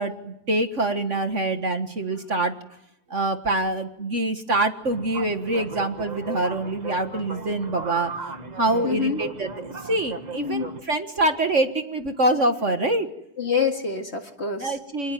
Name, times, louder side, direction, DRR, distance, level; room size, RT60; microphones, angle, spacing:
voice 1, 0.0-2.6 3.1-8.1 8.6-13.1 14.6-15.1, right 2 dB, 40° right, 7 dB, 1.8 m, -25 dB
sound 1, 4.8-10.8, right 4 dB, 25° right, 1.4 m, -37 dB
voice 2, 8.8-9.2 10.4-10.7 13.4-14.8, left 5 dB, 35° left, 5 dB, 2.0 m, -26 dB
27.0 x 20.0 x 9.2 m, 0.79 s
omnidirectional pair, 2.0 m